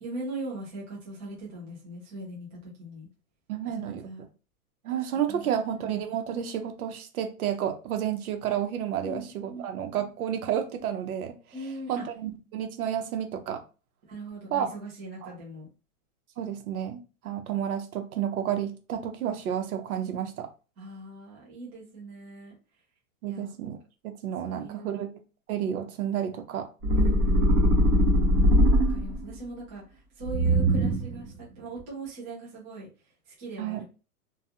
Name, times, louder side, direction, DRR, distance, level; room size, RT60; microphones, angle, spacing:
voice 1, 0.0-3.1 3.8-4.2 5.3-5.9 9.0-9.7 11.5-12.0 14.1-15.7 20.8-22.5 23.3-23.5 24.4-25.0 26.9-28.1 28.9-29.8 30.2-32.9 33.3-33.8, right 2 dB, 10° right, -6 dB, 0.3 m, -40 dB
voice 2, 3.5-4.1 4.8-11.3 11.9-13.6 14.5-14.7 15.2-15.3 16.4-20.5 23.2-23.8 24.0-25.2 25.5-26.7 33.6-33.8, right 9 dB, 80° right, 5 dB, 0.8 m, -31 dB
sound 1, 26.8-29.3 30.2-31.2, equal, 30° right, 0.9 m, -21 dB
2.3 x 2.3 x 2.8 m, 0.34 s
hypercardioid pair, 150°, 43 cm